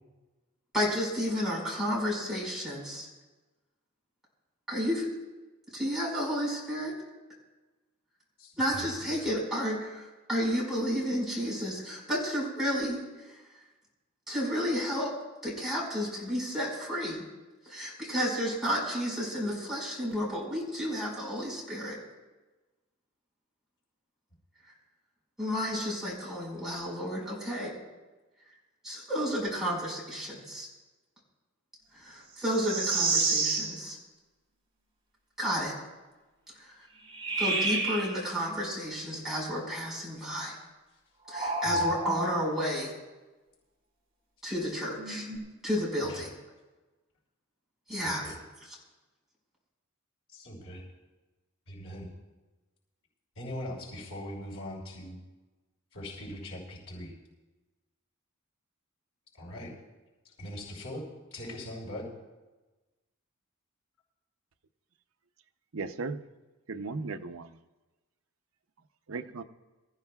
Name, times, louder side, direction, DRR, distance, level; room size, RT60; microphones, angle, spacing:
voice 1, 0.7-3.1 4.7-5.1 5.7-6.9 8.6-13.0 14.3-15.1 15.4-17.2 17.6-22.0 25.4-27.7 28.8-30.7 31.9-34.0 35.4-35.7 36.6-36.7 37.4-40.5 41.3-42.9 44.4-45.3 45.6-46.3 47.9-48.2, equal, ahead, -5 dB, 5.2 m, -31 dB
voice 2, 8.4-8.8 41.6-41.8 46.1-46.3 47.9-48.4 50.3-50.8 51.7-52.1 53.4-55.2 55.9-57.1 59.4-59.7 60.4-61.0 61.3-62.1, left 1 dB, 80° left, -9 dB, 5.7 m, -41 dB
sound 1, 32.4-33.7 37.1-38.1 41.2-42.4 44.9-45.4, right 3 dB, 25° right, 4.4 m, -29 dB
voice 3, 65.7-66.2 66.7-67.6 69.1-69.4, right 4 dB, 70° right, 7 dB, 0.7 m, -36 dB
24.5 x 14.5 x 2.4 m, 1.2 s
head